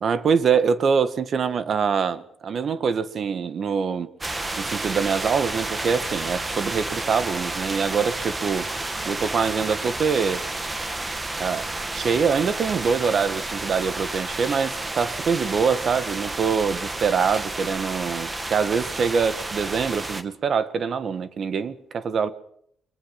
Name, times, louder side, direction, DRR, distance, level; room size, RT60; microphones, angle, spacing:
voice 1, 0.0-4.1 4.6-8.7 9.1-10.4 11.4-22.3, right 6 dB, 55° right, 1.7 m, -24 dB
sound 1, 4.2-20.2, right 2 dB, 20° right, 2.0 m, -31 dB
24.5 x 22.0 x 6.0 m
cardioid pair, 90°, 0 cm